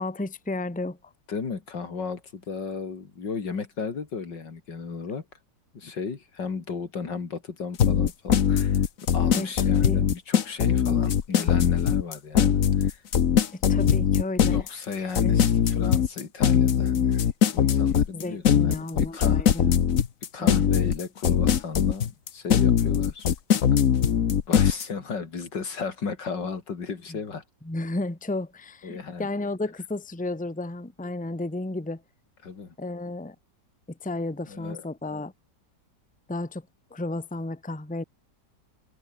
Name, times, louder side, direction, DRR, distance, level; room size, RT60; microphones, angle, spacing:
voice 1, 0.0-1.1 9.3-10.1 13.5-14.5 15.2-15.4 18.1-19.8 20.4-20.6 27.1-27.2 27.6-32.0 32.8-33.3 33.9-35.3 36.3-38.0, left 2 dB, 5° left, 1.3 m, -33 dB
voice 2, 1.3-5.3 5.7-13.0 14.4-19.5 20.3-23.3 23.5-23.6 24.5-27.4 28.8-29.3 32.4-32.7 34.5-34.8, left 5 dB, 75° left, 3.3 m, -35 dB
sound 1, 7.8-24.8, left 8 dB, 50° left, 1.4 m, -21 dB
omnidirectional pair, 1.9 m